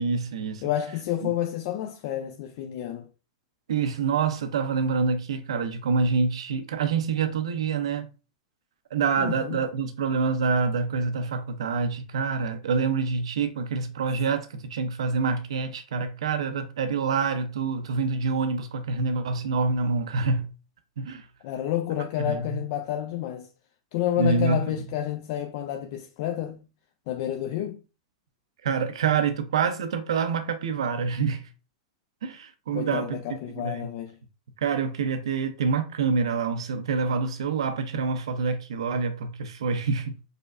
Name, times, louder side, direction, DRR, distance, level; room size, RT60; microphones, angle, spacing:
voice 1, 0.0-0.6 1.2-1.3 3.7-8.1 8.9-20.5 21.0-21.3 22.2-22.6 24.2-24.6 28.6-31.5 32.2-33.9 34.6-40.1, right 5 dB, 80° right, 0.5 m, -26 dB
voice 2, 0.6-3.1 9.2-9.6 21.4-23.5 23.9-26.7 27.1-27.8 32.7-34.1, left 12 dB, 55° left, 0.4 m, -30 dB
4.9 x 2.1 x 2.4 m
hypercardioid pair, 110°, 3 cm